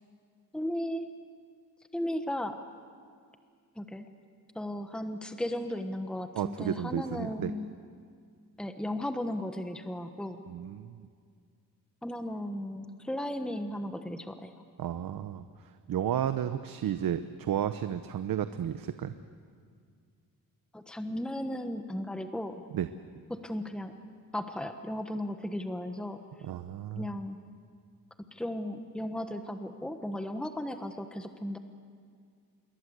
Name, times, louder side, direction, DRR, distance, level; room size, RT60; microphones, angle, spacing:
voice 1, 0.5-1.1 1.9-2.6 3.8-4.1 4.5-7.7 8.6-10.4 12.0-14.5 20.7-22.6 23.3-23.9 24.3-26.2 27.0-27.4 28.3-31.6, left 1 dB, ahead, 7 dB, 1.2 m, -35 dB
voice 2, 6.4-7.5 10.5-11.1 14.8-15.5 15.9-19.1 22.7-22.9 26.4-27.1, right 10 dB, 75° right, 10 dB, 0.9 m, -32 dB
27.0 x 23.0 x 8.1 m, 2.2 s
wide cardioid pair, 130°, 35 cm